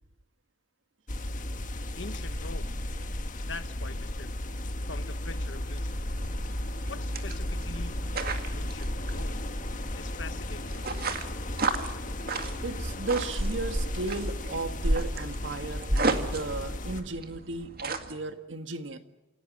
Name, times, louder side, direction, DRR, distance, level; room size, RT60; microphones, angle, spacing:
sound 1, 1.1-17.0, left 1 dB, 45° left, 1.7 m, -35 dB
voice 1, 1.9-2.7 3.5-4.3 4.8-6.0 6.9-9.4 9.9-10.9, left 3 dB, 70° left, 11 dB, 1.4 m, -44 dB
sound 2, 6.2-18.1, right 2 dB, 55° right, 2.1 m, -34 dB
voice 2, 12.6-19.0, right 3 dB, 80° right, 8 dB, 1.7 m, -35 dB
28.0 x 17.5 x 9.1 m, 1.1 s
head